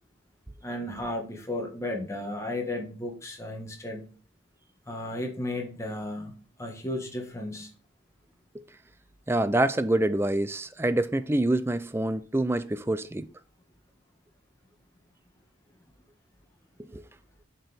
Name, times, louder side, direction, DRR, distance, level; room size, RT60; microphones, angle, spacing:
voice 1, 0.6-4.1 4.9-7.7, left 1 dB, 15° left, 1.4 m, -34 dB
voice 2, 9.3-13.3 16.9-17.0, right 1 dB, 10° right, 0.4 m, -26 dB
7.7 x 4.5 x 3.4 m
head